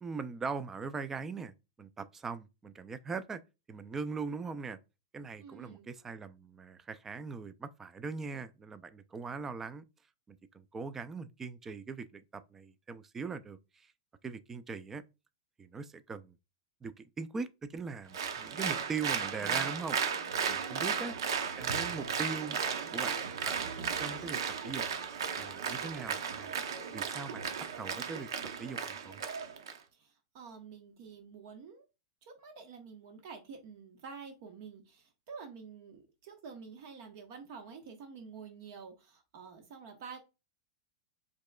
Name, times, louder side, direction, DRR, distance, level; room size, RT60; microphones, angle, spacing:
voice 1, 0.0-1.5 1.8-3.4 3.7-4.8 5.1-9.8 10.3-13.9 14.2-15.0 15.6-16.3 16.8-20.0 20.5-21.1 21.6-22.6 22.9-23.1 23.5-23.7 24.0-24.8 25.4-26.6 26.9-28.3 28.6-29.2, right 4 dB, 15° right, 0.3 m, -41 dB
voice 2, 5.4-5.9 20.7-21.2 29.9-31.8 32.2-40.2, right 5 dB, 50° right, 1.1 m, -49 dB
Applause, 18.1-29.8, right 7 dB, 90° right, 0.7 m, -35 dB
5.2 x 3.7 x 2.2 m
supercardioid pair, 155°, 2 cm